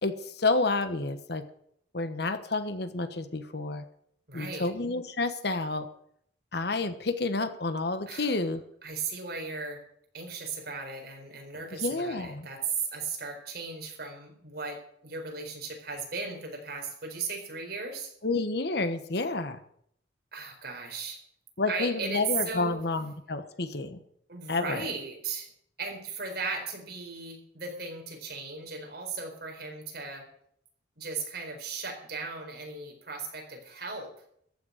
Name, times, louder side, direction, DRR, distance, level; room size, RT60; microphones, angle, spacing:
voice 1, 0.0-1.5 1.9-3.8 4.3-5.9 6.5-8.6 11.8-12.5 18.2-19.6 21.6-24.0 24.5-24.9, left 3 dB, 60° left, 10 dB, 1.2 m, -30 dB
voice 2, 4.3-4.7 8.1-8.5 8.8-9.8 10.1-18.1 20.3-21.2 21.7-22.8 24.3-25.5 25.8-30.3 31.0-34.1, right 4 dB, 55° right, 2 dB, 4.3 m, -36 dB
14.5 x 7.0 x 9.5 m, 0.67 s
head